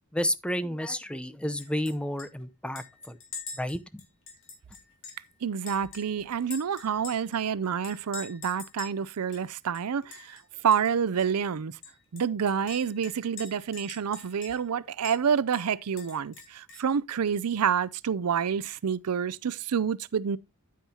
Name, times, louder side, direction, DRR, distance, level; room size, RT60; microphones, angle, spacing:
voice 1, 0.1-3.2 3.5-4.0, left 1 dB, 5° left, 0.7 m, -31 dB
Chink clink, 1.6-1.9 2.2-2.3 2.8-5.3 5.7-7.4 7.8-9.0 9.3-9.4 9.7-10.4 10.7-10.9 11.2-11.3 11.8-14.7 15.0-15.2 15.5-16.9, left 5 dB, 60° left, 3.8 m, -44 dB
voice 2, 5.4-11.8 12.1-20.4, right 7 dB, 90° right, 0.5 m, -28 dB
9.7 x 9.3 x 2.8 m
head